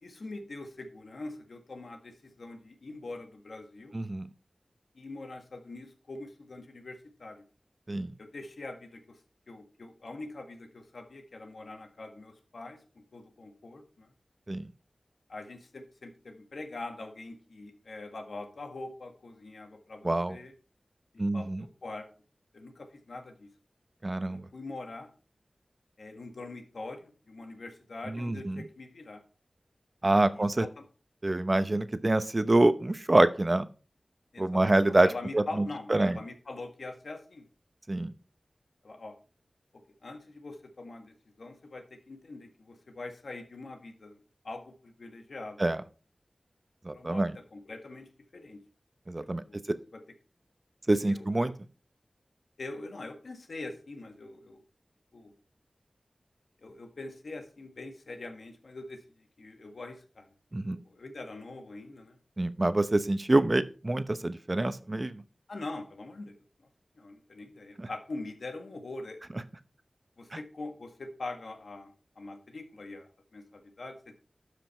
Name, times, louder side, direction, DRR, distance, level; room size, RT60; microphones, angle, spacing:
voice 1, 0.0-4.0 4.9-7.5 8.2-14.1 15.3-20.5 21.1-22.1 22.5-23.5 24.3-25.1 26.0-29.2 30.2-30.9 34.3-34.6 35.0-37.5 38.8-39.2 39.7-44.2 44.4-45.7 46.9-48.6 49.4-50.0 51.0-51.5 52.6-54.6 55.1-55.3 56.6-60.3 60.6-62.2 65.5-66.4 66.9-69.3 70.2-74.2, left 2 dB, 85° left, 5 dB, 1.7 m, -43 dB
voice 2, 3.9-4.3 7.9-8.1 14.5-14.6 20.0-20.4 21.2-21.6 24.0-24.5 28.1-28.6 30.0-30.6 31.2-33.7 34.4-35.1 35.3-35.4 35.9-36.2 37.9-38.1 45.6-45.8 46.9-47.3 49.1-49.4 50.9-51.5 60.5-60.8 62.4-65.2, right 2 dB, 35° right, 12 dB, 0.8 m, -26 dB
12.0 x 5.1 x 4.4 m, 0.37 s
wide cardioid pair, 65°, 0 cm